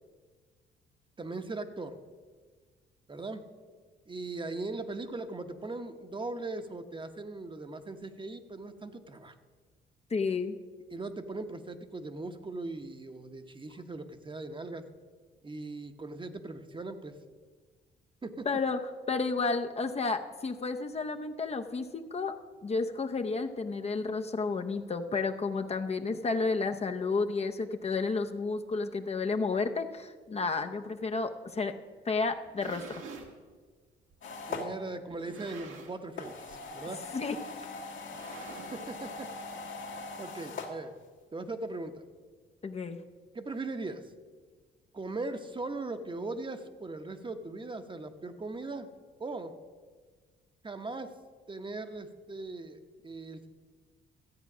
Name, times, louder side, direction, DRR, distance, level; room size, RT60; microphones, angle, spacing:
voice 1, 1.2-1.9 3.1-3.4 4.1-9.4 10.9-14.8 15.4-17.1 18.2-18.5 34.5-37.0 38.7-39.3 40.2-40.9 41.3-42.0 43.3-44.0 44.9-48.9 49.2-49.5 50.6-51.1 51.5-53.5, right 2 dB, 25° right, 8 dB, 0.9 m, -39 dB
voice 2, 10.1-10.6 18.5-18.8 19.1-22.3 22.6-31.7 32.1-33.0 37.1-37.4 42.6-43.0, left 4 dB, 30° left, 6 dB, 0.7 m, -31 dB
sound 1, 32.3-33.3 34.1-34.2 35.1-36.1 36.4-36.7 37.0-37.1 38.0-39.0, right 4 dB, 80° right, 1.8 m, -47 dB
sound 2, 34.2-34.7 36.1-40.7, left 3 dB, 70° left, 1.8 m, -41 dB
13.5 x 8.1 x 6.0 m, 1.5 s
cardioid pair, 90°, 20 cm